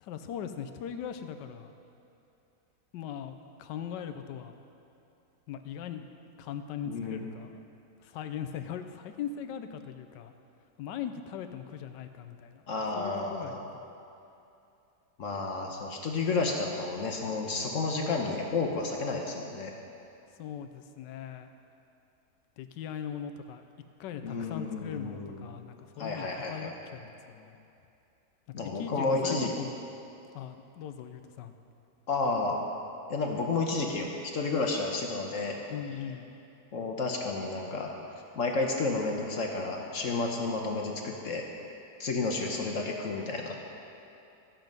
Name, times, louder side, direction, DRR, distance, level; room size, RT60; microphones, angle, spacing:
voice 1, 0.0-1.7 2.9-4.6 5.5-6.1 6.4-7.6 8.0-10.3 10.8-12.6 12.9-13.9 20.4-21.5 22.6-23.6 24.0-27.6 28.6-29.8 30.3-31.5 35.7-36.3, left 8 dB, 85° left, 8 dB, 1.3 m, -40 dB
voice 2, 6.9-7.2 12.7-13.6 15.2-19.7 24.2-25.5 26.0-26.7 28.5-29.5 32.1-32.6 33.1-35.6 36.7-37.9 38.4-41.4 42.0-43.6, left 3 dB, 55° left, 1 dB, 1.2 m, -31 dB
14.0 x 7.4 x 5.3 m, 2.8 s
omnidirectional pair, 1.9 m